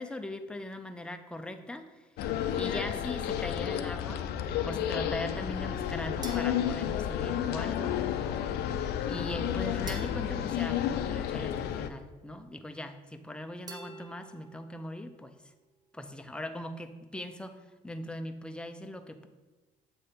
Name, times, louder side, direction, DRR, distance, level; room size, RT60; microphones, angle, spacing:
voice 1, 0.0-2.1 2.6-4.3 4.6-8.0 9.1-15.5 15.9-19.3, left 1 dB, 5° left, 7 dB, 0.4 m, -40 dB
sound 1, 2.2-11.9, left 10 dB, 75° left, 0.4 m, -31 dB
sound 2, 6.2-7.7 9.9-11.7 13.7-14.8, right 3 dB, 25° right, 0.7 m, -49 dB
7.6 x 3.4 x 4.3 m, 1.2 s
cardioid pair, 110°, 17 cm